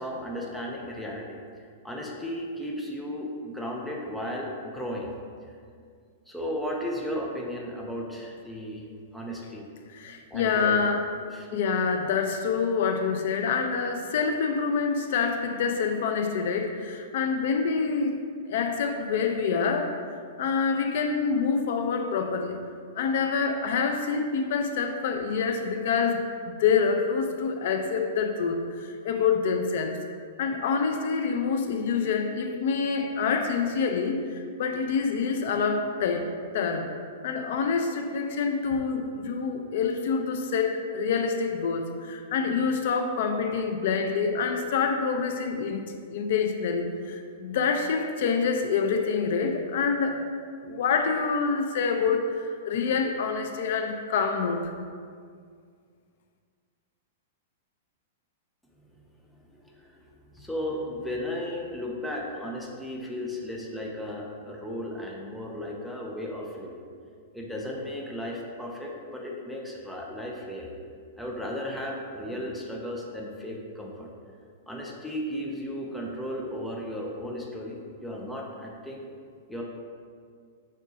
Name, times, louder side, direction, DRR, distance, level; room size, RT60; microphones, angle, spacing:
voice 1, 0.0-5.1 6.3-8.8 9.1-9.7 10.3-10.8 11.2-11.5 58.8-58.9 59.2-66.8 67.3-70.7 71.2-74.1 74.7-79.0 79.5-79.6, left 1 dB, ahead, -2 dB, 0.6 m, -35 dB
voice 2, 9.9-11.1 11.5-18.2 18.5-19.9 20.4-22.6 22.9-30.0 30.4-36.9 37.2-50.2 50.6-54.7, left 5 dB, 55° left, 5 dB, 0.5 m, -26 dB
6.6 x 3.6 x 5.0 m, 2.1 s
supercardioid pair, 170°, 0 cm